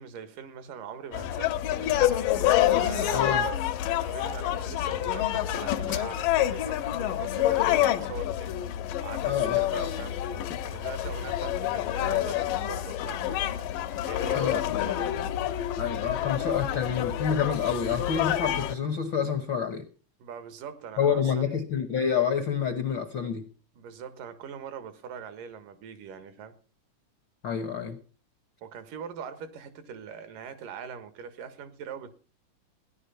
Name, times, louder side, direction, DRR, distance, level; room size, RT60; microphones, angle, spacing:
voice 1, 0.0-2.3 2.8-3.2 4.0-8.5 9.0-10.2 10.6-15.1 20.2-21.6 23.8-26.5 28.6-32.1, right 7 dB, 80° right, 3.0 m, -42 dB
sound 1, 1.1-18.7, left 12 dB, 85° left, 2.5 m, -28 dB
voice 2, 3.1-3.5 9.2-9.6 14.3-14.6 15.8-19.9 21.0-23.5 27.4-28.0, left 7 dB, 65° left, 1.1 m, -28 dB
16.0 x 11.0 x 5.7 m
omnidirectional pair, 3.8 m